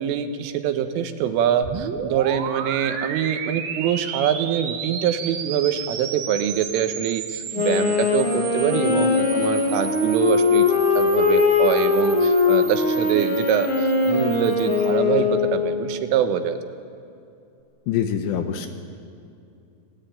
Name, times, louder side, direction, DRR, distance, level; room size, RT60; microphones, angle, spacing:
voice 1, 0.0-10.7 11.0-16.6, right 9 dB, 80° right, 8 dB, 3.7 m, -24 dB
sound 1, 1.6-14.9, right 7 dB, 60° right, 2.8 m, -34 dB
Wind instrument woodwind instrument, 7.5-15.8, left 4 dB, 40° left, 2.2 m, -20 dB
voice 2, 17.9-18.7, left 9 dB, 75° left, 7 dB, 2.9 m, -24 dB
27.5 x 18.5 x 9.0 m, 2.5 s
omnidirectional pair, 5.8 m